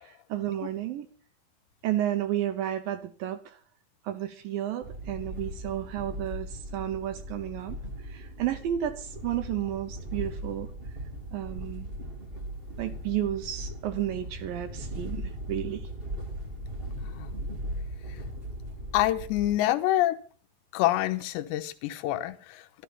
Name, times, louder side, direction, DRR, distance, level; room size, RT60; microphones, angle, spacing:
voice 1, 0.0-1.1 1.8-3.6 4.0-10.7 11.3-11.9 12.8-15.9, right 12 dB, 75° right, 10 dB, 2.1 m, -32 dB
sound 1, 4.8-19.6, equal, 55° right, 0.6 m, -38 dB
voice 2, 18.9-20.2 20.7-22.8, left 14 dB, 80° left, 8 dB, 3.1 m, -27 dB
12.5 x 12.5 x 5.6 m, 0.41 s
omnidirectional pair, 5.1 m